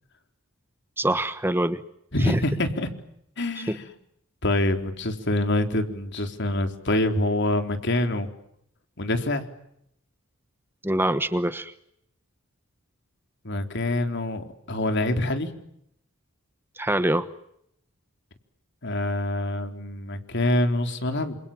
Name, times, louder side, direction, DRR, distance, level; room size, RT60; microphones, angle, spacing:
voice 1, 1.0-1.8 2.2-2.4 3.7-3.8 10.8-11.7 16.8-17.3, right 1 dB, 10° right, 11 dB, 1.1 m, -24 dB
voice 2, 2.1-2.9 3.4-3.8 4.4-8.3 9.0-9.4 13.4-15.5 18.8-21.4, left 1 dB, 55° left, 6 dB, 4.0 m, -25 dB
29.0 x 27.5 x 7.4 m, 0.75 s
head